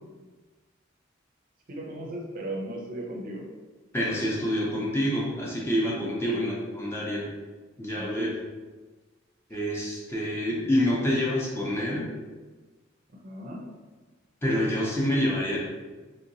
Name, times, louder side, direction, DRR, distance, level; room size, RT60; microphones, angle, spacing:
voice 1, 1.7-3.5 6.2-6.5 7.9-8.4 13.1-13.7, right 1 dB, 45° right, -1 dB, 0.5 m, -36 dB
voice 2, 3.9-7.3 7.8-8.3 9.5-12.1 14.4-15.6, equal, 15° left, -4 dB, 0.5 m, -27 dB
3.4 x 2.8 x 2.6 m, 1.3 s
head